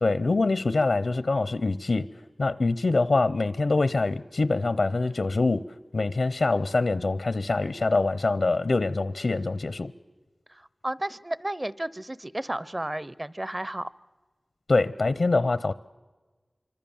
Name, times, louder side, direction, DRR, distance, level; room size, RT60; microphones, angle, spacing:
voice 1, 0.0-2.1 2.4-5.7 5.9-9.9 14.7-15.7, left 3 dB, 75° left, 17 dB, 0.7 m, -24 dB
voice 2, 10.5-13.9, right 1 dB, 25° right, 19 dB, 0.7 m, -33 dB
26.0 x 24.5 x 7.2 m, 1.3 s
wide cardioid pair, 55°, 0 cm